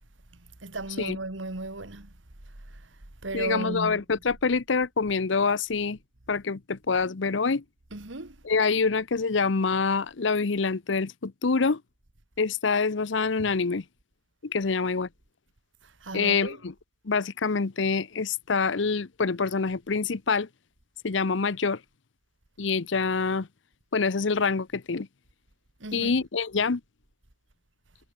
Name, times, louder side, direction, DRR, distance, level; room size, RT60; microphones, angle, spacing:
voice 1, 0.6-2.1 2.7-2.8 3.2-4.0 7.9-8.4 13.4-13.5 16.0-16.6 25.8-26.1, right 2 dB, 85° right, 2.2 m, -35 dB
voice 2, 3.3-6.0 6.3-7.6 8.4-11.8 12.4-13.8 14.4-15.1 16.1-16.7 17.0-20.5 21.0-21.8 22.6-23.5 23.9-25.1 25.9-26.8, left 4 dB, 75° left, 0.8 m, -26 dB
head